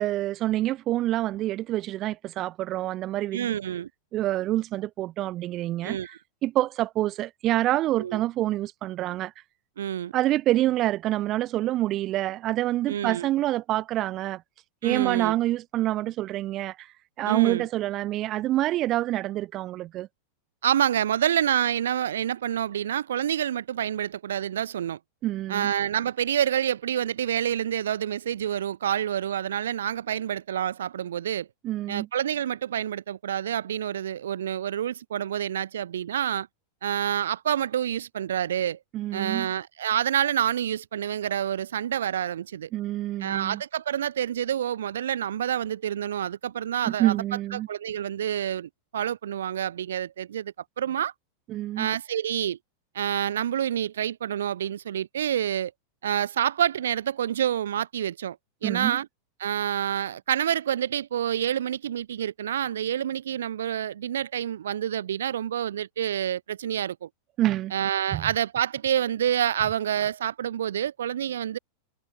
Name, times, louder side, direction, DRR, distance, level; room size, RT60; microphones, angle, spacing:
voice 1, 0.0-3.5 4.1-6.0 6.4-9.3 10.1-14.4 14.8-16.9 17.2-20.1 25.2-25.7 31.6-32.1 38.9-39.5 42.7-43.6 46.8-47.7 51.5-51.9 58.6-59.0 67.4-67.7 68.1-68.2, right 15 dB, 35° right, 4.4 m, -27 dB
voice 2, 3.3-3.9 5.8-6.2 8.0-8.2 9.8-10.1 12.9-13.3 14.8-15.3 17.3-17.7 20.6-25.0 25.5-31.5 31.9-36.5 36.8-38.8 39.1-42.7 43.2-47.2 47.5-51.1 51.8-52.6 52.9-55.7 56.0-58.4 58.6-59.1 59.4-67.1 67.7-71.6, right 10 dB, 65° right, 4.0 m, -28 dB
figure-of-eight pair, 90°, 0 cm